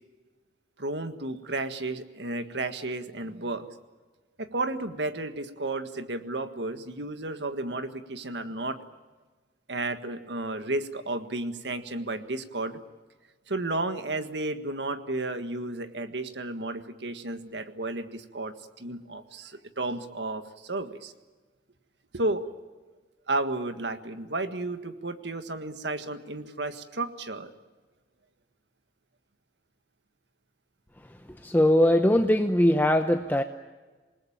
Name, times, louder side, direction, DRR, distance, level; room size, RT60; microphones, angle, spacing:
voice 1, 0.8-3.7 4.4-8.8 9.7-12.8 13.5-21.1 22.1-22.5 23.3-27.5, right 2 dB, 75° right, 9 dB, 1.7 m, -32 dB
voice 2, 31.4-33.4, left 1 dB, 10° left, 6 dB, 0.8 m, -21 dB
27.5 x 20.0 x 8.8 m, 1.3 s
head